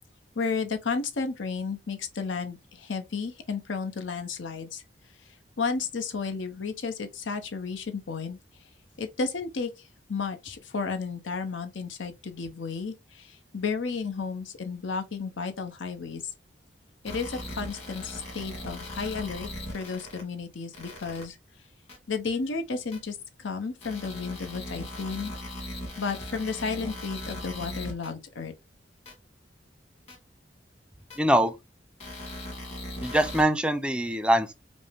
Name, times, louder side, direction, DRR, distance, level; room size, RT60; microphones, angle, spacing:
voice 1, 0.4-4.8 5.6-8.4 9.0-16.2 17.0-21.4 22.1-25.3 26.0-28.5, left 4 dB, 90° left, 0.8 m, -33 dB
sound 1, 17.0-20.2 20.7-21.2 21.9-22.0 22.9-23.0 23.8-28.1 29.1-29.2 30.1-30.2 31.1-31.2 32.0-33.4, left 1 dB, 35° left, 1.7 m, -39 dB
voice 2, 31.2-31.5 33.0-34.5, right 1 dB, 5° right, 0.4 m, -23 dB
5.2 x 2.0 x 3.4 m
head